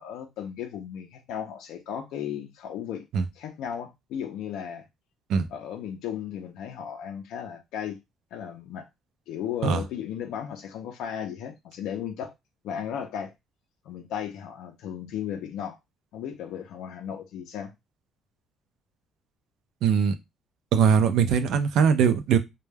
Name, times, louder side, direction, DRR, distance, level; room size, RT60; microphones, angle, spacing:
voice 1, 0.0-3.1 3.4-4.9 5.5-8.0 8.3-8.9 9.3-12.3 12.6-13.3 13.9-15.8 16.1-17.7, left 9 dB, 65° left, 0.4 m, -35 dB
voice 2, 19.8-20.1 20.7-22.4, right 7 dB, 55° right, 0.4 m, -21 dB
2.2 x 2.1 x 3.2 m
cardioid pair, 180°, 0 cm